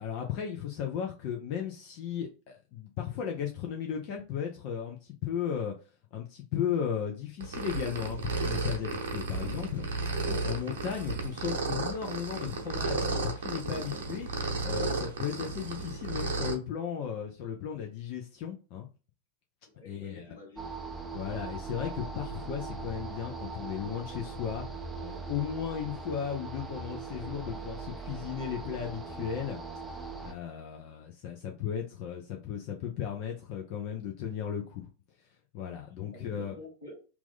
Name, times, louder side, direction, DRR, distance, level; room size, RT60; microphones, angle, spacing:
voice 1, 0.0-5.7 6.1-9.8 10.3-14.3 14.6-18.9 19.9-20.2 21.1-24.7 25.0-29.6 29.9-34.9 35.5-36.5, left 8 dB, 45° left, 0.6 m, -35 dB
sound 1, 7.4-16.5, right 3 dB, 60° right, 0.8 m, -33 dB
voice 2, 9.4-9.8 19.6-20.8 36.1-37.1, left 1 dB, 80° left, 1.8 m, -49 dB
sound 2, 20.6-30.3, right 4 dB, 10° right, 0.6 m, -40 dB
3.0 x 2.7 x 3.6 m
figure-of-eight pair, 90°, 0 cm